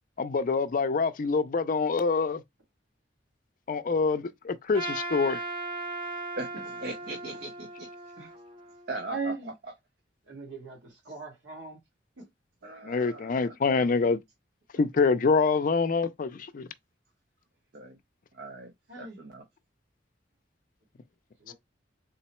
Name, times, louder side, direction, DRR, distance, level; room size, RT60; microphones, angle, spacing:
voice 1, 0.2-2.4 3.7-5.4 12.8-14.2 14.8-16.7 21.5-21.6, left 4 dB, 45° left, 0.4 m, -26 dB
Trumpet, 4.7-9.0, right 2 dB, 30° right, 0.7 m, -37 dB
voice 2, 6.8-7.9 8.9-9.3 12.6-13.6 17.7-18.0 18.3-18.7 19.0-19.4, right 2 dB, 65° right, 0.6 m, -39 dB
voice 3, 9.1-9.5 10.3-11.8 12.2-12.3 18.9-19.2 21.4-21.5, right 4 dB, 80° right, 1.5 m, -38 dB
3.8 x 2.0 x 4.2 m
head